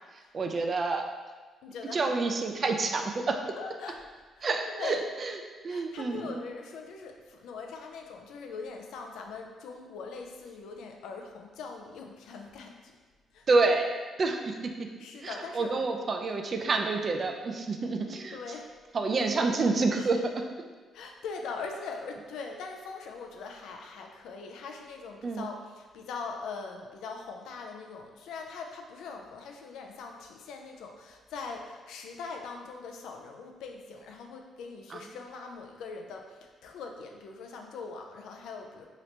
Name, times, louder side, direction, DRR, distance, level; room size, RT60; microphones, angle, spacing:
voice 1, 0.1-1.1 1.9-3.4 4.4-5.4 5.6-6.4 13.5-13.9 14.2-14.9 15.1-18.4 18.9-20.5 25.2-25.5 34.9-35.0, right 3 dB, 45° right, 4 dB, 0.4 m, -28 dB
voice 2, 1.6-2.1 2.6-2.8 3.6-4.0 4.4-5.0 5.7-12.9 13.3-13.5 15.0-16.1 18.3-18.7 20.1-20.2 20.9-38.9, left 4 dB, 85° left, 3 dB, 0.4 m, -41 dB
2.9 x 2.7 x 3.2 m, 1.4 s
cardioid pair, 90°, 0 cm